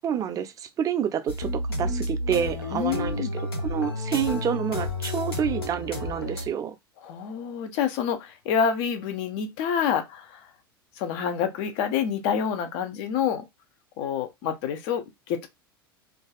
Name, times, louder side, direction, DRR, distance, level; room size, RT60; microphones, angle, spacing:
voice 1, 0.0-6.8, right 8 dB, 30° right, 0.4 m, -28 dB
sound 1, 1.3-6.5, left 1 dB, 80° left, 0.8 m, -31 dB
voice 2, 2.7-3.3 7.0-10.4 11.0-13.4 14.0-15.5, left 7 dB, 50° left, 0.6 m, -27 dB
2.5 x 2.3 x 2.3 m
figure-of-eight pair, 80°, 12 cm